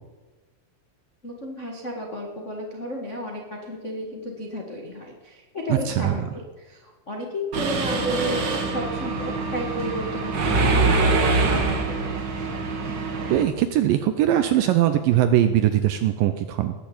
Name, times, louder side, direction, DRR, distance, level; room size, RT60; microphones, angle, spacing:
voice 1, 1.2-12.2, left 1 dB, 90° left, -1 dB, 0.6 m, -33 dB
voice 2, 5.7-6.2 13.3-16.7, right 12 dB, 80° right, 9 dB, 2.0 m, -21 dB
Mechanisms, 7.5-13.4, right 3 dB, 65° right, 1.1 m, -24 dB
19.5 x 6.9 x 8.6 m, 1.3 s
omnidirectional pair, 4.7 m